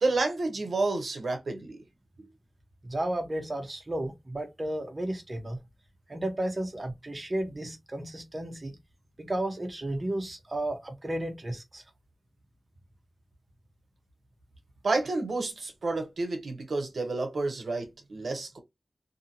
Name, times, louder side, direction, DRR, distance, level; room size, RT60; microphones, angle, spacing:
voice 1, 0.0-1.8 2.2-2.3 14.8-18.6, right 3 dB, 90° right, 0.7 m, -30 dB
voice 2, 2.8-5.6 6.1-8.8 9.2-11.8, right 1 dB, 35° right, 0.8 m, -33 dB
2.7 x 2.6 x 2.7 m
wide cardioid pair, 95°, 0 cm